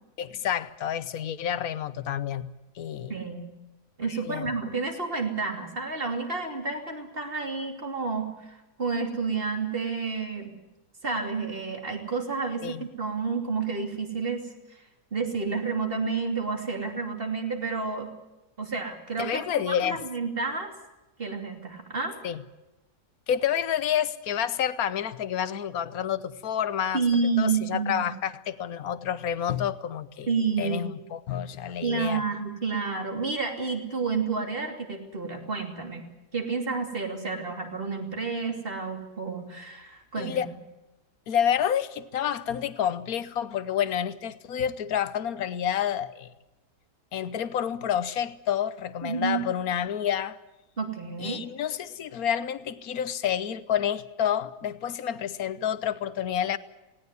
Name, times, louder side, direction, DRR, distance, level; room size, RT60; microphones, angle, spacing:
voice 1, 0.2-2.5 2.8-3.2 4.1-4.5 12.6-12.9 19.2-20.0 22.2-22.4 23.3-27.0 27.4-30.3 30.6-32.2 40.2-40.5 41.3-46.3 47.1-50.4 51.2-56.6, left 9 dB, 65° left, 1.3 m, -29 dB
voice 2, 3.1-3.5 4.0-10.5 11.0-14.5 15.1-18.1 18.6-20.7 21.2-22.2 26.9-28.1 30.3-30.8 31.8-40.5 49.0-49.4 50.8-51.4, right 4 dB, 35° right, 3.0 m, -30 dB
19.0 x 18.0 x 9.5 m
omnidirectional pair, 1.8 m